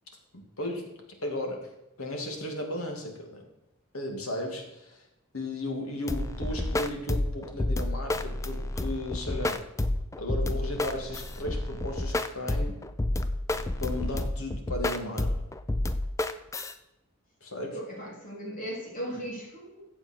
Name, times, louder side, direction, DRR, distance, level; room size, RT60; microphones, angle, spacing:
voice 1, 0.3-0.9 1.2-1.7 2.0-3.4 3.9-5.1 5.3-9.6 10.2-12.8 13.8-15.5 17.4-17.8, left 1 dB, 80° left, 2 dB, 2.3 m, -35 dB
sound 1, 6.1-16.7, left 1 dB, 15° left, 0.4 m, -30 dB
voice 2, 17.7-19.8, equal, 40° left, -2 dB, 3.1 m, -37 dB
14.0 x 7.8 x 4.5 m, 0.91 s
head